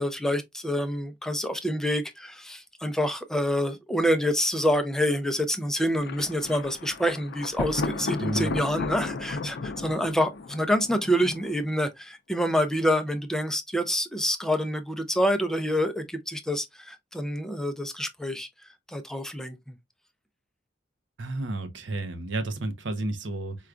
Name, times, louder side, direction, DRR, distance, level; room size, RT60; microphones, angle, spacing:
voice 1, 0.0-18.5 18.9-19.7, equal, 5° left, 0.4 m, -27 dB
Thunder, 6.0-11.8, left 3 dB, 65° left, 0.5 m, -34 dB
voice 2, 8.2-8.5 21.2-23.6, right 2 dB, 80° right, 0.7 m, -31 dB
4.7 x 2.3 x 2.4 m
head